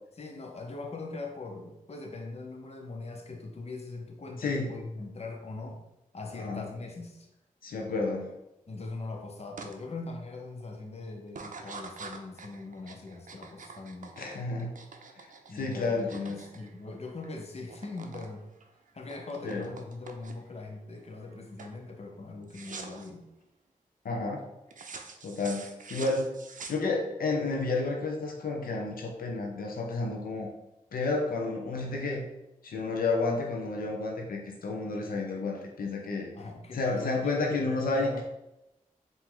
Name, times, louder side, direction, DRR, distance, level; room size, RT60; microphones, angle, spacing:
voice 1, 0.2-5.8 6.1-7.3 8.7-14.2 15.5-18.4 18.9-23.3 36.3-38.2, left 3 dB, 45° left, 2 dB, 0.8 m, -41 dB
voice 2, 4.4-4.7 6.3-6.6 7.6-8.3 14.2-14.7 15.5-16.4 19.4-19.6 24.0-24.4 25.2-26.4 26.7-30.5 30.9-32.2 32.6-36.3 36.7-38.1, left 3 dB, 85° left, 0 dB, 0.7 m, -31 dB
sound 1, 9.6-9.7 10.2-10.6 11.3-17.3 17.6-18.3 18.6-20.6 21.0-21.3 21.6-21.8 22.5-23.1 24.7-27.2, right 4 dB, 65° right, 0.6 m, -46 dB
4.5 x 2.7 x 3.7 m, 0.90 s
cardioid pair, 50°, 15 cm